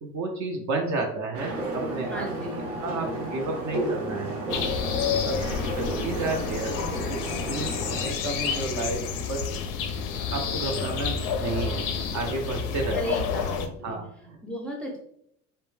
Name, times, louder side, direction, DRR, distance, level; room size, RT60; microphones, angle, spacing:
voice 1, 0.0-2.3 2.8-4.4 5.0-9.4 10.3-13.0 13.8-14.4, right 3 dB, 40° right, 2 dB, 0.6 m, -32 dB
sound 1, 1.3-8.1, right 1 dB, 80° right, 0.8 m, -32 dB
voice 2, 2.1-2.6 12.9-14.0 14.4-15.0, equal, 5° left, -1 dB, 0.6 m, -34 dB
sound 2, 4.5-13.7, left 6 dB, 50° left, 0.4 m, -29 dB
2.5 x 2.2 x 3.1 m, 0.70 s
hypercardioid pair, 70°, 44 cm